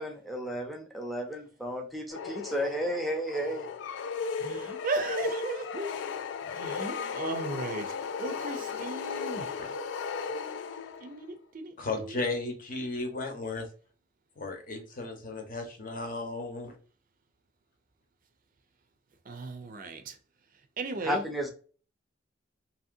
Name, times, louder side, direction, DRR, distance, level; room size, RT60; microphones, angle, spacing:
voice 1, 0.0-3.7 21.0-21.5, equal, ahead, 0.5 m, -33 dB
sound 1, 2.1-11.2, left 5 dB, 70° left, 0.3 m, -35 dB
voice 2, 4.4-6.0 6.4-7.9 8.2-9.5 11.0-12.2 19.3-20.1 20.8-21.2, right 3 dB, 45° right, 0.5 m, -36 dB
voice 3, 9.3-9.7 11.8-13.7 14.4-16.7, left 3 dB, 45° left, 0.8 m, -35 dB
2.9 x 2.7 x 2.5 m
head